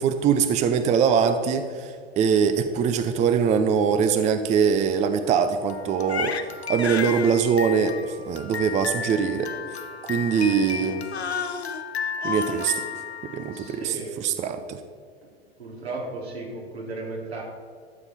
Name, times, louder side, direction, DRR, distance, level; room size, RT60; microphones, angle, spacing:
voice 1, 0.0-6.4 6.7-11.0 12.2-12.7 13.2-14.0 14.2-14.8, right 7 dB, 25° right, 10 dB, 0.5 m, -23 dB
Crying sobbing, 5.7-13.9, left 6 dB, 85° left, 0.7 m, -32 dB
voice 2, 13.2-14.3 15.2-15.3 15.6-17.4, right 2 dB, 80° right, -2 dB, 2.7 m, -36 dB
12.5 x 7.1 x 4.2 m, 2.2 s
figure-of-eight pair, 85°, 31 cm